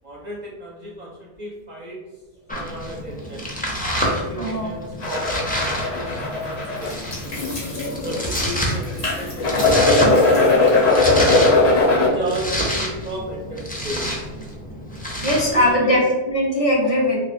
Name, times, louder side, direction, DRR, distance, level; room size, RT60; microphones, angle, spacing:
voice 1, 0.0-2.0 2.5-3.5 4.0-7.4 8.0-11.1 12.0-14.1 15.5-16.0, right 1 dB, 50° right, -3 dB, 0.6 m, -34 dB
Domestic sounds home sounds, 2.5-15.7, equal, 10° left, 0.5 m, -28 dB
voice 2, 4.4-4.7 15.2-17.2, left 1 dB, 35° left, -3 dB, 0.8 m, -19 dB
sound 1, 5.0-12.1, left 2 dB, 85° left, 1.3 m, -19 dB
3.3 x 2.3 x 4.2 m, 1.2 s
omnidirectional pair, 1.1 m